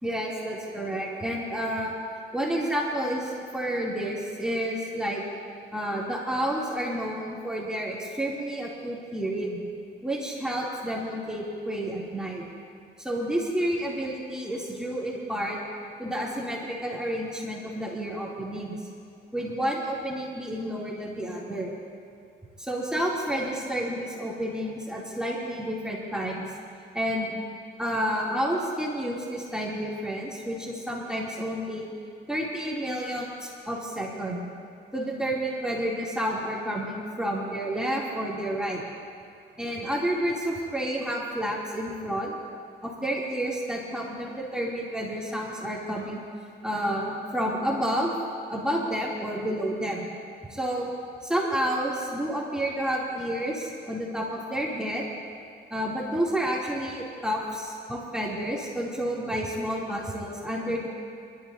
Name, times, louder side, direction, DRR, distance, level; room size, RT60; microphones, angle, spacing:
voice 1, 0.0-1.9 2.3-5.2 5.7-9.6 10.0-12.4 13.0-15.6 16.0-18.8 19.3-21.7 22.6-26.5 26.9-27.4 27.8-31.8 32.3-34.4 34.9-38.8 39.6-42.4 42.8-46.2 46.6-48.1 48.5-50.1 50.5-50.9 51.2-55.1 55.7-60.9, equal, 5° right, -5 dB, 2.8 m, -30 dB
28.5 x 12.5 x 2.7 m, 2.5 s
cardioid pair, 90°, 20 cm